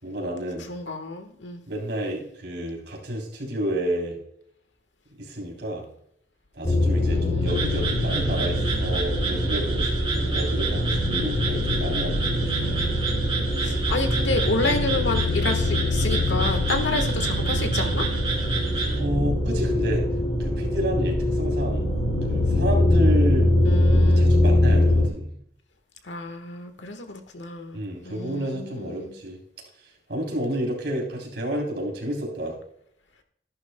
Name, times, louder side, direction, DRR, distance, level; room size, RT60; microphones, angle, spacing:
voice 1, 0.0-0.7 1.7-4.2 5.2-5.9 6.5-12.9 18.9-20.0 20.4-21.9 22.3-23.5 24.0-25.3 27.7-29.4 30.1-32.6, right 1 dB, 70° right, -1 dB, 3.4 m, -30 dB
voice 2, 0.7-1.6 7.1-7.8 13.6-18.1 23.6-24.3 26.0-29.1, left 3 dB, 85° left, 6 dB, 1.4 m, -30 dB
sound 1, 6.6-25.1, left 1 dB, 35° left, 3.2 m, -23 dB
sound 2, 7.5-19.0, right 4 dB, 30° right, 2.2 m, -31 dB
13.5 x 11.0 x 2.2 m, 0.73 s
head